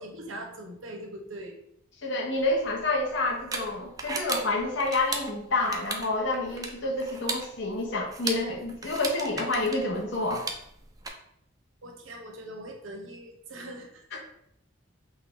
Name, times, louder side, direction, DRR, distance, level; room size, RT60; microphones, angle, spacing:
voice 1, 0.0-1.6 11.8-14.2, right 1 dB, 80° right, 2 dB, 0.9 m, -41 dB
voice 2, 2.0-10.5, left 2 dB, 65° left, -2 dB, 0.8 m, -28 dB
sound 1, 2.4-11.1, right 3 dB, 20° right, 0.4 m, -37 dB
5.5 x 2.3 x 3.5 m, 0.75 s
head